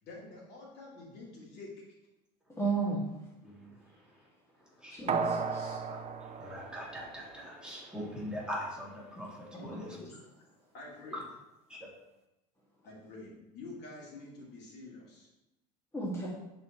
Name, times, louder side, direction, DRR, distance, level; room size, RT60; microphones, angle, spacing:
voice 1, 0.0-1.7 9.5-10.2 10.7-11.2 12.8-15.3, left 2 dB, 55° left, -3 dB, 2.6 m, -47 dB
voice 2, 2.6-3.0 4.9-5.8 9.2-9.3 9.5-9.8 15.9-16.3, right 3 dB, 15° left, -6 dB, 1.9 m, -34 dB
voice 3, 4.8-5.3 5.9-9.9 11.1-11.2 11.7-11.9, equal, 5° right, -5 dB, 2.4 m, -42 dB
sound 1, 5.1-7.6 8.0-8.1, right 5 dB, 30° right, 0.7 m, -35 dB
10.5 x 4.4 x 3.0 m, 0.94 s
hypercardioid pair, 85°, 21 cm